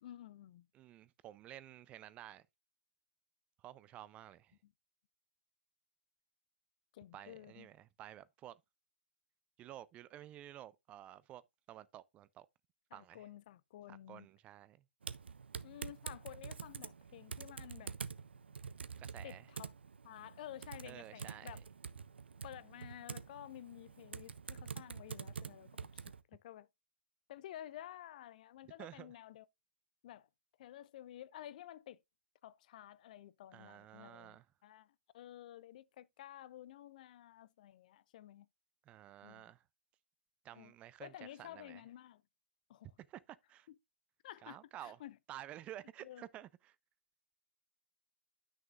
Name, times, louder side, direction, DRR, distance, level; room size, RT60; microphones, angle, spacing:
voice 1, 0.0-0.7 4.6-4.7 6.9-7.7 12.9-14.3 15.6-17.9 19.2-19.7 20.0-21.6 22.4-26.0 26.3-26.7 27.3-29.5 30.0-30.3 30.6-32.0 32.4-38.5 39.2-39.5 40.5-40.7 41.0-42.2 42.7-42.9 43.7-43.8 44.2-45.2 46.0-46.3, left 12 dB, 45° left, 0.4 m, -52 dB
voice 2, 0.7-2.5 3.6-4.5 7.1-8.6 9.6-11.4 11.7-12.5 12.9-13.3 13.9-14.8 19.0-19.5 20.8-21.5 28.8-29.1 33.5-34.5 38.9-39.6 40.4-41.1 41.4-41.8 43.1-43.7 44.4-45.0 45.3-46.8, right 12 dB, 20° right, 0.4 m, -52 dB
Typing, 15.0-26.2, right 6 dB, 70° right, 0.6 m, -47 dB
10.5 x 6.3 x 2.4 m
figure-of-eight pair, 125°, 6 cm